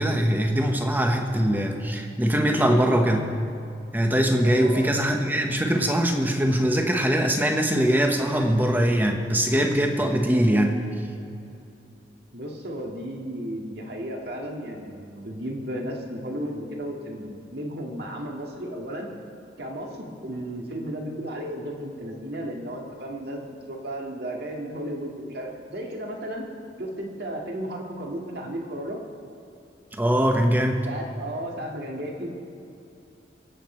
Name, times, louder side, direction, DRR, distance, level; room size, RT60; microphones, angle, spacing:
voice 1, 0.0-3.3 3.9-10.8 30.0-30.9, equal, 10° right, 3 dB, 1.1 m, -22 dB
voice 2, 4.4-5.0 12.3-19.1 19.6-26.5 26.8-29.0 30.8-32.3, right 1 dB, 60° right, 0 dB, 2.1 m, -34 dB
23.5 x 8.3 x 4.5 m, 2.7 s
head